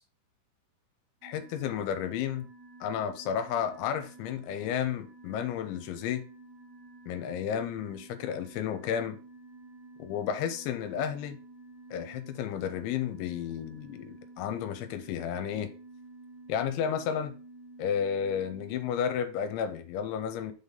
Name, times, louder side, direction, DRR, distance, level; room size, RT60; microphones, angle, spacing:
voice 1, 1.2-2.5 2.8-6.2 7.1-9.2 10.0-11.4 11.9-15.7 16.5-17.3 17.8-20.5, left 8 dB, 85° left, 3.0 m, -32 dB
sound 1, 1.2-19.1, right 2 dB, 40° right, 2.9 m, -51 dB
6.6 x 4.1 x 5.2 m
omnidirectional pair, 5.4 m